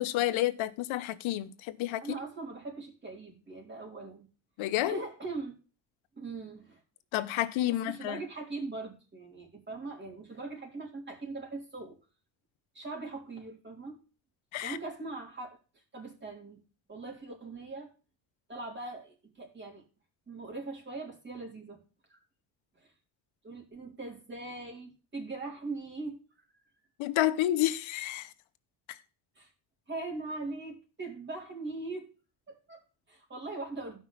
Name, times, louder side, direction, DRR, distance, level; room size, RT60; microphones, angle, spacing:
voice 1, 0.0-2.0 4.6-5.0 7.1-8.2 14.5-14.8 27.0-28.3, left 14 dB, 80° left, 1.1 m, -30 dB
voice 2, 2.0-4.3 4.9-5.5 6.2-6.8 7.7-12.0 12.7-14.0 14.6-15.6 15.9-16.6 16.9-17.9 18.5-19.8 20.3-21.8 22.1-22.2 22.8-22.9 23.4-26.2 29.4-29.5 29.9-32.1 32.5-34.0, right 3 dB, 25° right, 4.2 m, -41 dB
17.0 x 5.6 x 3.4 m
cardioid pair, 125°, 46 cm